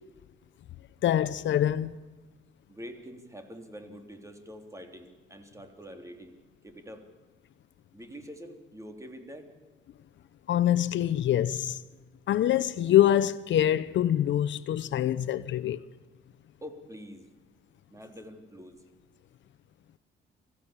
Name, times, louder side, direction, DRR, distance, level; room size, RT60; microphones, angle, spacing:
voice 1, 1.0-1.9 10.5-11.8 12.3-15.8, left 11 dB, 70° left, 0.8 m, -25 dB
voice 2, 2.7-6.3 6.6-7.1 7.9-9.5 16.6-17.3 17.9-18.8, equal, 15° right, 3.3 m, -45 dB
24.5 x 15.5 x 7.4 m
cardioid pair, 90°, 20 cm